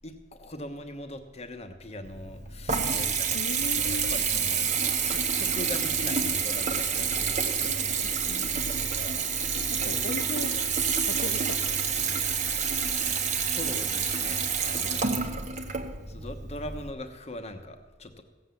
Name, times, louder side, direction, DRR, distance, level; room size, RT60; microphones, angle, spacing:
voice 1, 0.0-4.6 5.0-7.9 8.4-8.5 8.8-10.4 12.0-15.1 16.1-18.2, left 1 dB, 35° left, 8 dB, 1.1 m, -41 dB
Water tap faucet / Bathtub (filling or washing) / Trickle dribble, 2.0-16.9, right 6 dB, 40° right, 1.1 m, -28 dB
voice 2, 3.3-4.2 7.6-8.7 9.9-10.7 11.1-11.6, left 4 dB, 70° left, 9 dB, 0.5 m, -38 dB
sound 1, 4.6-9.7, left 1 dB, 15° left, 1.4 m, -49 dB
16.5 x 7.8 x 7.0 m, 1.3 s
head